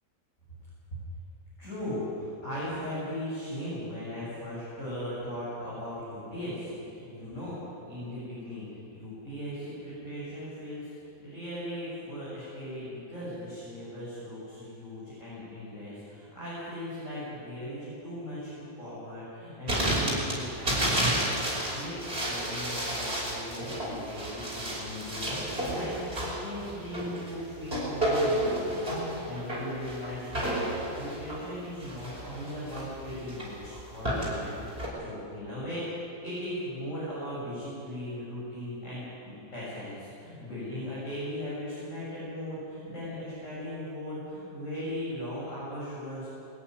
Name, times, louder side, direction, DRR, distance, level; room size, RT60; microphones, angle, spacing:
voice 1, 1.6-7.6 7.9-8.6 8.9-20.8 21.1-22.0 22.2-34.6 35.0-46.3, left 1 dB, 35° left, -10 dB, 8.2 m, -38 dB
sound 1, 19.7-34.9, right 1 dB, 30° right, 6.0 m, -31 dB
22.0 x 14.5 x 9.7 m, 2.7 s
omnidirectional pair, 2.1 m